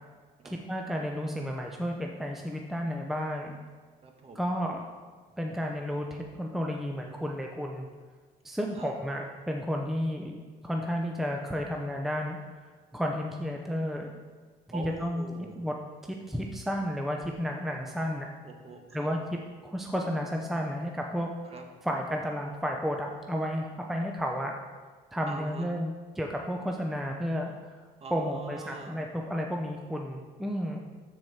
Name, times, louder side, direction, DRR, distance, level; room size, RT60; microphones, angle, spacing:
voice 1, 0.4-3.6 4.3-4.8 5.4-7.9 8.4-10.4 10.6-12.4 12.9-14.1 14.7-15.2 15.6-15.7 16.3-18.3 18.9-19.2 19.6-21.5 21.8-24.5 25.1-27.5 28.1-30.8, equal, ahead, 1 dB, 0.7 m, -32 dB
voice 2, 4.0-4.4 8.7-8.9 14.7-15.6 18.4-19.1 21.5-21.6 25.3-25.7 28.0-29.0, right 3 dB, 35° right, 3 dB, 1.4 m, -43 dB
13.0 x 4.8 x 4.3 m, 1.5 s
cardioid pair, 110°, 17 cm